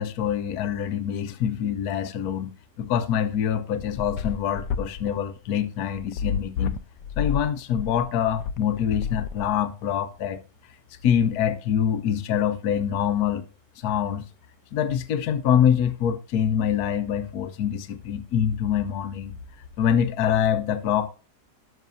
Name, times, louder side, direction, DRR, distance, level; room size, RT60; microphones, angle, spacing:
voice 1, 0.0-6.8 7.2-10.4 11.0-13.4 13.8-14.3 14.7-19.4 19.8-21.1, left 9 dB, 65° left, 1.3 m, -25 dB
sound 1, 3.3-9.8, left 7 dB, 85° left, 1.3 m, -30 dB
12.5 x 6.7 x 2.6 m
omnidirectional pair, 1.9 m